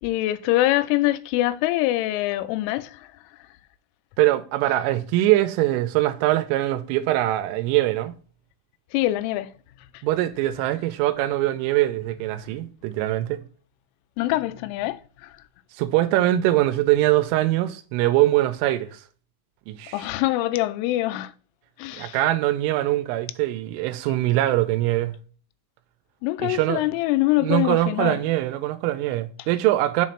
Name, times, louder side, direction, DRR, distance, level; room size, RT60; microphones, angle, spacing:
voice 1, 0.0-3.1 8.9-9.5 14.2-15.3 19.9-21.3 21.8-22.2 26.2-28.2, left 16 dB, 90° left, 3.1 m, -24 dB
voice 2, 4.2-8.1 10.0-13.4 15.8-19.0 19.7-20.0 22.0-25.2 26.4-26.8 27.4-30.1, right 15 dB, 85° right, 3.1 m, -22 dB
7.2 x 3.2 x 5.6 m
omnidirectional pair, 5.6 m